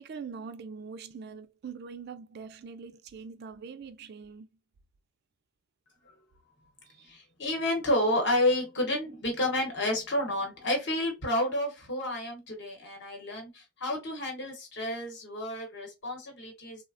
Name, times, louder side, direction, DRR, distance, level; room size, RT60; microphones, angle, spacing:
voice 1, 0.0-4.5 6.9-7.1, right 5 dB, 50° right, 0.3 m, -43 dB
voice 2, 7.0-16.8, left 1 dB, 55° left, 0.9 m, -30 dB
3.2 x 2.0 x 2.5 m
head